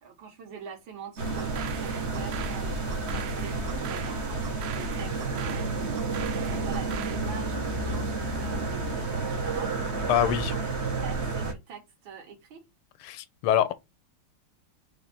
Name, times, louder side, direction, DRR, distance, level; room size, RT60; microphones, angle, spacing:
voice 1, 0.0-12.6, right 7 dB, 65° right, 2.0 m, -45 dB
sound 1, 1.2-11.5, right 3 dB, 45° right, 0.9 m, -30 dB
sound 2, 1.4-7.3, right 11 dB, 80° right, 1.5 m, -42 dB
voice 2, 10.1-10.5 13.0-13.7, left 10 dB, 90° left, 1.5 m, -24 dB
5.1 x 2.6 x 3.9 m
omnidirectional pair, 2.4 m